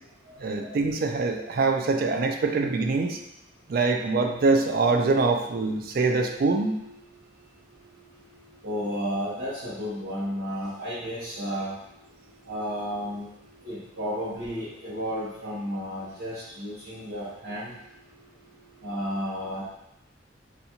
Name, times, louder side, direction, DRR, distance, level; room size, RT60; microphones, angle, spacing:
voice 1, 0.4-3.2 3.7-6.8, right 3 dB, 50° right, 5 dB, 0.3 m, -24 dB
voice 2, 8.6-11.7 12.5-13.3 13.6-17.7 18.8-19.6, equal, 90° right, -12 dB, 1.1 m, -32 dB
4.0 x 2.4 x 2.8 m, 0.83 s
head